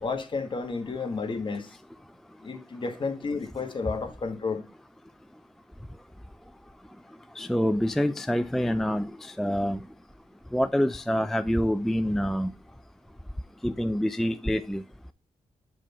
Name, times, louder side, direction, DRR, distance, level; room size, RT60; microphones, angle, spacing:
voice 1, 0.0-1.8 2.4-4.6, left 4 dB, 40° left, 1.3 m, -31 dB
voice 2, 7.4-9.8 10.5-12.5 13.6-14.8, equal, 5° left, 0.3 m, -26 dB
7.5 x 3.5 x 5.3 m
cardioid pair, 90°, 13 cm